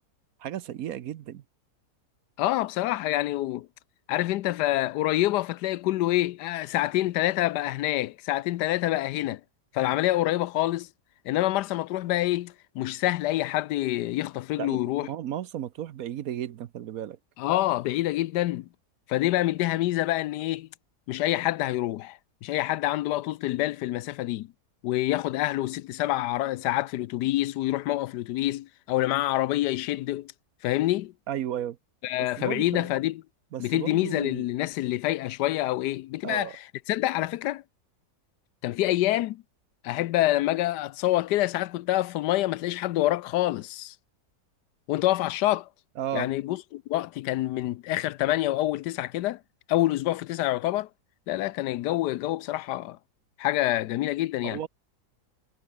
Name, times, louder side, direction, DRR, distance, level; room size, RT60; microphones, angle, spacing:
voice 1, 0.4-1.4 14.6-14.8 15.1-17.2 31.3-31.8 32.4-32.9 33.5-34.4 36.2-36.6 46.0-46.3 54.4-54.7, right 11 dB, 65° right, 1.1 m, -34 dB
voice 2, 2.4-3.7 4.1-9.4 9.7-10.9 11.2-15.1 17.4-18.7 19.1-20.7 21.1-24.5 24.8-30.3 30.6-31.1 32.0-33.2 33.6-36.6 36.9-37.6 38.6-39.4 39.8-43.9 44.9-45.7 46.1-49.4 49.7-50.9 51.3-53.0 53.4-54.6, left 15 dB, 85° left, 1.2 m, -27 dB
omnidirectional pair, 1.8 m